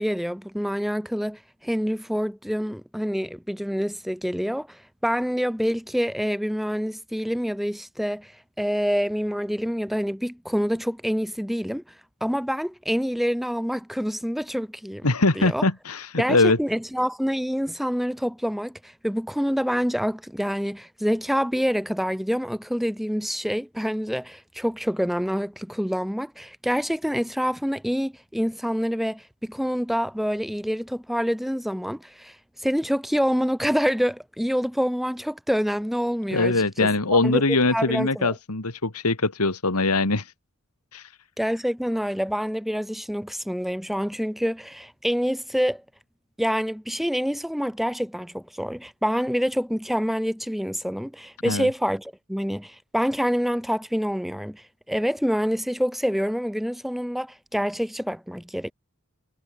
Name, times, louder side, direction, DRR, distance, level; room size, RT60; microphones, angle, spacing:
voice 1, 0.0-8.3 8.6-11.8 12.2-15.1 15.3-15.6 16.2-32.3 32.6-37.4 37.7-38.3 41.4-45.8 46.4-58.7, equal, ahead, 2.9 m, -26 dB
voice 2, 15.0-16.6 36.3-40.3 40.9-41.1 51.5-51.7, left 3 dB, 80° left, 2.4 m, -22 dB
head